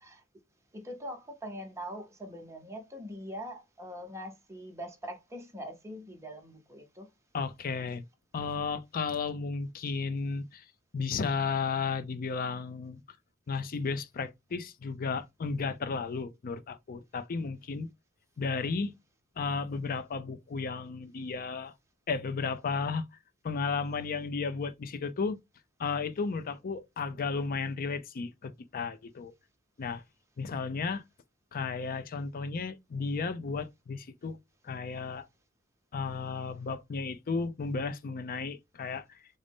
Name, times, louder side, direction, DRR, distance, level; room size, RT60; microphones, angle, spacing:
voice 1, 0.7-7.1, equal, 15° right, 0.9 m, -42 dB
voice 2, 7.3-8.0 8.3-10.6 10.9-13.0 13.5-17.9 18.4-18.9 19.4-21.7 22.1-23.0 23.4-25.4 25.8-29.3 29.8-30.0 30.4-31.0 31.5-34.4 34.6-35.3 35.9-39.0, left 4 dB, 45° left, 0.4 m, -33 dB
3.8 x 2.1 x 3.4 m
head